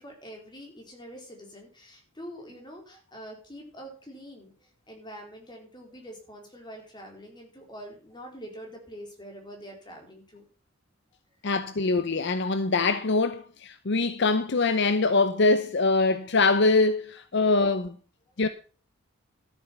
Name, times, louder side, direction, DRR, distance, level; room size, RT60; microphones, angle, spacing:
voice 1, 0.0-10.4, equal, 20° left, 4.3 m, -45 dB
voice 2, 11.4-18.0 18.4-18.5, left 3 dB, 60° left, 0.7 m, -23 dB
13.0 x 7.6 x 5.8 m
head